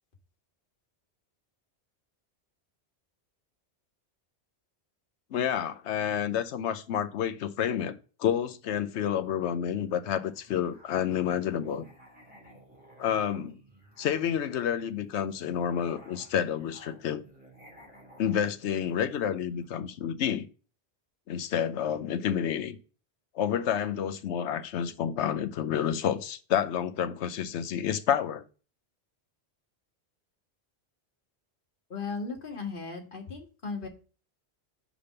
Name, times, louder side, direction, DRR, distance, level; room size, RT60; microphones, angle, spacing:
voice 1, 5.3-11.9 13.0-13.6 14.0-17.2 18.2-20.5 21.3-22.8 23.3-28.4, left 9 dB, 90° left, 1.0 m, -29 dB
Musical instrument, 9.6-19.7, right 1 dB, 10° right, 2.6 m, -55 dB
voice 2, 31.9-33.9, left 4 dB, 50° left, 1.7 m, -36 dB
5.2 x 4.9 x 5.5 m
omnidirectional pair, 1.1 m